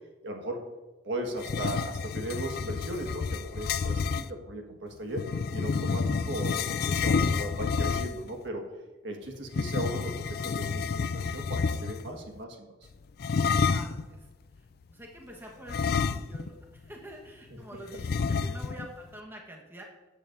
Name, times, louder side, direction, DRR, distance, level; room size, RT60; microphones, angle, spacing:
voice 1, 0.2-0.6 1.0-8.7 9.0-12.7 18.2-18.3, right 1 dB, 70° right, 2 dB, 1.6 m, -37 dB
sound 1, 1.4-4.3 5.1-8.3 9.5-12.1 13.2-14.0 15.7-16.6 16.9-17.0 18.0-18.9, left 5 dB, 55° left, 0.4 m, -29 dB
voice 2, 13.6-14.3 14.5-19.8, right 1 dB, 10° right, -1 dB, 1.2 m, -46 dB
14.0 x 8.5 x 2.6 m, 1.2 s
head